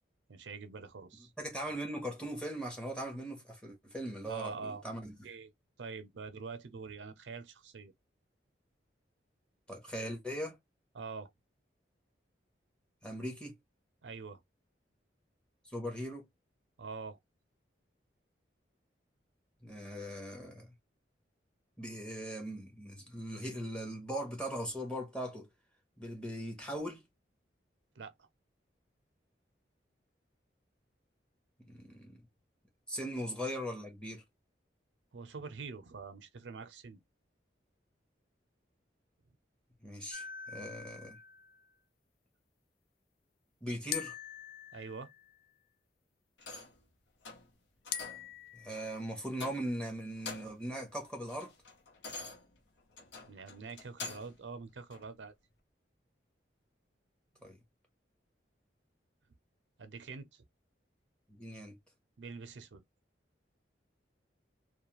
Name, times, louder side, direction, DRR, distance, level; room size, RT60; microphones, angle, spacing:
voice 1, 0.3-1.3 4.2-4.8 5.2-5.5 5.8-7.9 10.9-11.3 14.0-14.4 16.8-17.2 28.0-28.3 35.1-37.0 44.7-45.1 53.3-55.3 59.8-60.4 62.2-62.8, right 4 dB, 80° right, 0.5 m, -45 dB
voice 2, 1.4-5.1 9.7-10.6 13.0-13.6 15.6-16.2 19.6-20.7 21.8-25.5 26.0-27.0 31.7-32.2 32.9-34.2 39.8-41.2 43.6-44.2 48.5-51.5 57.4-57.6 61.3-61.8, equal, 5° left, 0.9 m, -40 dB
sound 1, 40.1-41.6 43.9-45.6 47.9-49.0, left 8 dB, 50° left, 0.3 m, -43 dB
sound 2, 46.4-46.8 47.2-47.5 47.8-48.3 48.7-48.9 49.3-49.8 50.1-50.7 51.0-54.4 54.9-55.0, left 3 dB, 85° left, 0.7 m, -46 dB
2.3 x 2.1 x 2.9 m
head